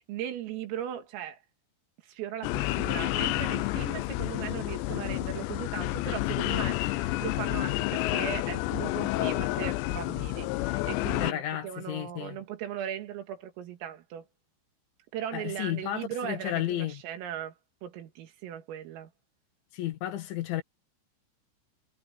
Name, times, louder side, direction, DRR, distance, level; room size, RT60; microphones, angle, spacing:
voice 1, 0.0-1.4 2.0-14.3 15.1-17.5 17.8-19.1, right 10 dB, 80° right, 4.9 m, -38 dB
sound 1, 2.4-11.3, left 18 dB, 90° left, 2.5 m, -30 dB
voice 2, 11.2-12.4 15.3-17.0 19.7-20.6, left 13 dB, 70° left, 3.9 m, -33 dB
omnidirectional pair, 5.9 m